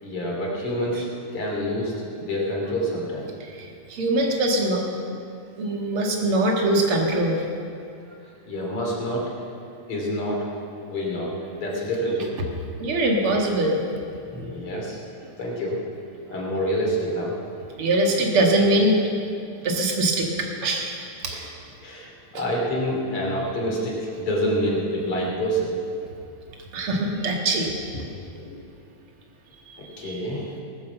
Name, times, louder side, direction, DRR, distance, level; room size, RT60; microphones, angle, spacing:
voice 1, 0.0-3.3 8.4-9.3 9.9-10.5 10.9-11.3 11.6-12.4 14.2-15.0 15.4-15.8 16.3-17.3 21.3-21.5 21.8-25.8 28.3-28.6 30.0-30.5, equal, 50° left, -2 dB, 3.4 m, -27 dB
voice 2, 3.6-5.1 5.6-7.4 12.8-13.8 14.4-14.5 17.8-19.1 19.6-21.5 26.7-27.7 30.0-30.2, right 1 dB, 50° right, 1 dB, 2.4 m, -22 dB
18.5 x 9.6 x 7.0 m, 2.5 s
omnidirectional pair, 3.4 m